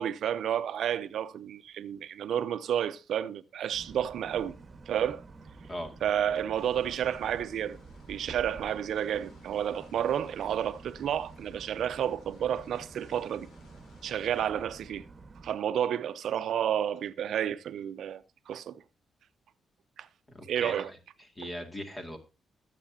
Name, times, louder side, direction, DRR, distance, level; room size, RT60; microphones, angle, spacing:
voice 1, 0.0-4.5 4.9-5.2 6.0-7.8 8.1-13.5 14.0-15.1 15.4-18.8 20.0-20.1 20.5-20.9, right 9 dB, 75° right, 0.7 m, -31 dB
sound 1, 3.7-15.6, right 3 dB, 30° right, 1.5 m, -50 dB
sound 2, 6.6-14.4, left 4 dB, 70° left, 2.6 m, -60 dB
voice 2, 20.3-20.8 21.4-22.2, equal, 20° left, 2.3 m, -38 dB
22.5 x 7.7 x 2.8 m
cardioid pair, 120°, 0 cm